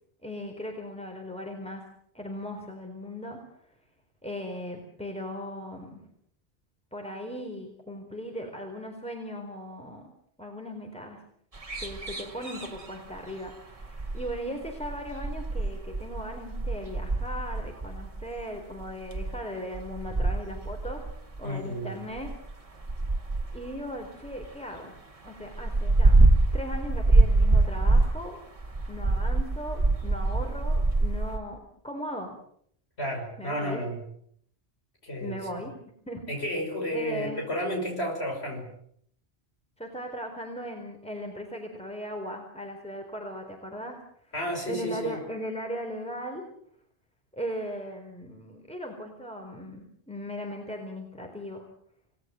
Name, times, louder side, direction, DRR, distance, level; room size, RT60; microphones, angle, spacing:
voice 1, 0.2-1.8 2.1-3.4 4.2-6.1 6.9-10.0 10.4-11.2 11.8-21.1 21.4-22.3 23.5-24.9 25.2-26.2 26.5-28.4 28.9-31.6 31.8-32.3 33.4-33.8 35.2-35.7 36.1-36.4 36.9-37.4 39.8-44.3 44.7-46.4 47.3-51.7, equal, 5° left, 2 dB, 4.2 m, -38 dB
sound 1, 11.5-13.2 13.5-19.4 19.7-21.4 22.1-24.5 24.7-24.8 25.1-28.3 28.6-31.4, right 2 dB, 30° right, 2.1 m, -25 dB
voice 2, 21.4-21.9 33.0-34.0 35.0-35.4 36.3-38.7 44.3-45.2, equal, 75° left, 1 dB, 6.3 m, -32 dB
29.0 x 18.5 x 7.8 m, 0.66 s
omnidirectional pair, 1.1 m